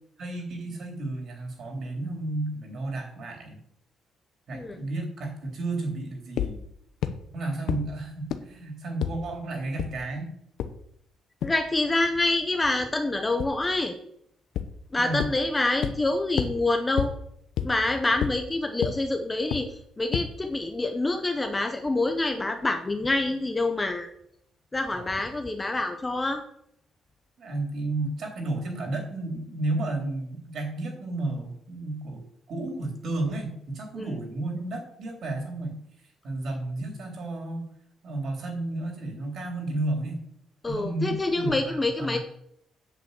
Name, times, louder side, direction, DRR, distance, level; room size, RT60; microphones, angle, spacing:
voice 1, 0.2-3.6 4.5-6.6 7.3-10.3 15.0-15.2 24.9-25.2 27.4-32.2 32.5-35.8 36.2-37.6 38.0-40.2 40.7-42.2, right 2 dB, 45° right, 3 dB, 3.2 m, -32 dB
sound 1, 6.4-6.5 7.0-7.1 7.7-7.8 8.3-8.4 9.0-9.1 9.8-9.9 10.6-10.7 11.4-11.5 13.4-13.5 14.6-14.7 15.2-15.3 15.8-15.9 16.4-16.5 17.0-17.1 17.6-17.7 18.2-18.3 18.8-18.9 19.5-19.6 20.1-20.2, left 10 dB, 70° left, 0.9 m, -26 dB
voice 2, 11.4-13.9 14.9-17.1 17.6-24.1 24.7-26.4 34.0-34.1 40.6-42.2, left 2 dB, 15° left, 6 dB, 0.8 m, -26 dB
8.3 x 6.8 x 8.1 m, 0.72 s
cardioid pair, 175°, 0 cm